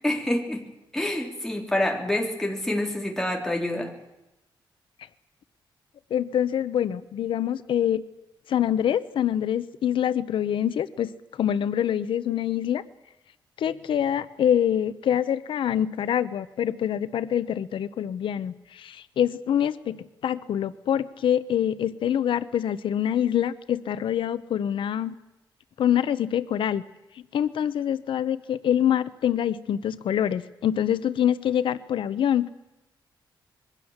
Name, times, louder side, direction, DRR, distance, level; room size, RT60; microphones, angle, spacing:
voice 1, 0.0-0.7 0.9-3.9, left 1 dB, 5° left, 1 dB, 3.5 m, -27 dB
voice 2, 6.1-8.0 8.5-11.1 11.4-12.8 13.6-25.1 25.8-26.8 27.3-32.5, left 10 dB, 85° left, 14 dB, 0.9 m, -25 dB
26.5 x 22.0 x 7.4 m, 0.93 s
wide cardioid pair, 175°, 8 cm